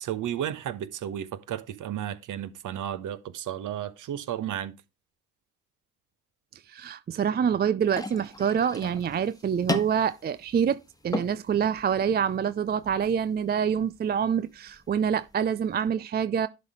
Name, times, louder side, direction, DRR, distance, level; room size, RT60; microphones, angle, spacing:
voice 1, 0.0-4.8, right 10 dB, 50° right, 1.2 m, -33 dB
voice 2, 6.7-16.5, right 7 dB, 25° right, 0.5 m, -26 dB
sound 1, 7.9-15.9, left 1 dB, 10° left, 1.4 m, -38 dB
11.0 x 4.0 x 4.9 m
hypercardioid pair, 60°, 40 cm